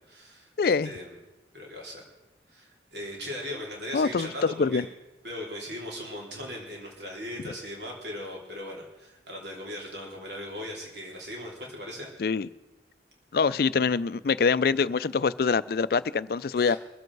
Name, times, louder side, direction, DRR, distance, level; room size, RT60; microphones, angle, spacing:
voice 1, 0.1-1.1 1.5-2.0 2.5-4.8 5.2-12.1 16.6-16.8, left 1 dB, 70° right, -2 dB, 3.2 m, -39 dB
voice 2, 0.6-0.9 3.9-4.9 12.2-12.5 13.3-16.8, left 5 dB, 55° left, 16 dB, 0.4 m, -25 dB
23.5 x 7.9 x 4.7 m, 1.1 s
head